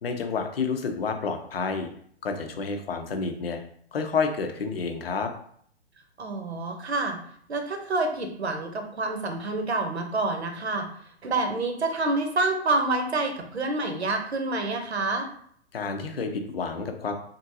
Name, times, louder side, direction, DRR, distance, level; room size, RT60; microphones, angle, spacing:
voice 1, 0.0-1.9 2.2-3.6 3.9-5.3 15.7-17.1, left 5 dB, 60° left, 5 dB, 0.7 m, -29 dB
voice 2, 6.2-7.2 7.5-10.9 11.2-15.3, right 2 dB, 75° right, 4 dB, 0.9 m, -27 dB
3.6 x 2.6 x 2.7 m, 0.63 s
figure-of-eight pair, 120°, 33 cm